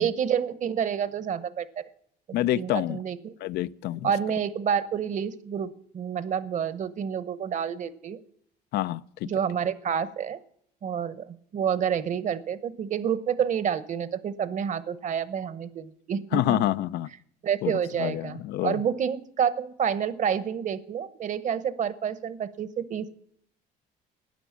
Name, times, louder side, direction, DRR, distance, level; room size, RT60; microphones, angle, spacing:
voice 1, 0.0-1.8 2.3-3.3 4.0-8.2 9.2-10.4 10.8-11.3 11.5-16.6 17.4-23.1, right 8 dB, 45° right, 0.9 m, -29 dB
voice 2, 2.3-3.0 3.4-4.1 8.7-9.3 16.3-17.1 17.6-18.8, left 14 dB, 75° left, 0.5 m, -27 dB
12.5 x 9.6 x 7.3 m
cardioid pair, 110°, 17 cm